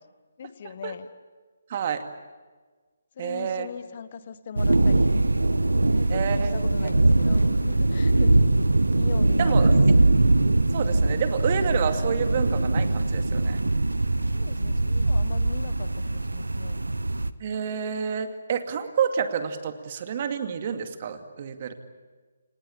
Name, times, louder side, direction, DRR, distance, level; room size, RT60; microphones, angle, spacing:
voice 1, 0.4-1.1 3.1-5.2 5.8-8.4 8.8-9.9 14.3-16.8, left 7 dB, 40° left, 13 dB, 1.5 m, -40 dB
voice 2, 1.7-2.0 3.2-3.7 6.1-6.5 9.4-9.8 10.7-13.6 17.4-21.7, right 7 dB, 40° right, 8 dB, 2.3 m, -29 dB
sound 1, 4.6-17.3, right 2 dB, 80° right, 1.1 m, -22 dB
29.5 x 19.5 x 8.6 m, 1.4 s
figure-of-eight pair, 145°, 0 cm